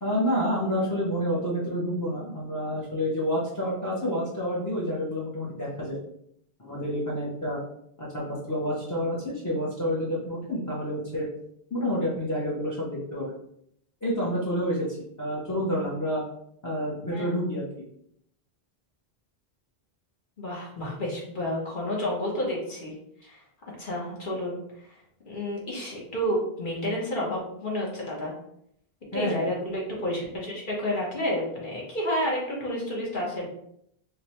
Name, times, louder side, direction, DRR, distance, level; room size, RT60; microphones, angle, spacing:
voice 1, 0.0-6.0 6.6-7.6 8.0-11.3 11.7-13.3 14.0-16.2 16.6-17.7 29.1-29.5, equal, 20° left, -6 dB, 0.7 m, -29 dB
voice 2, 20.4-22.9 23.2-23.4 23.8-24.6 25.3-28.3 29.1-33.5, left 1 dB, 55° left, -3 dB, 1.1 m, -30 dB
4.8 x 2.1 x 2.9 m, 0.72 s
omnidirectional pair, 1.0 m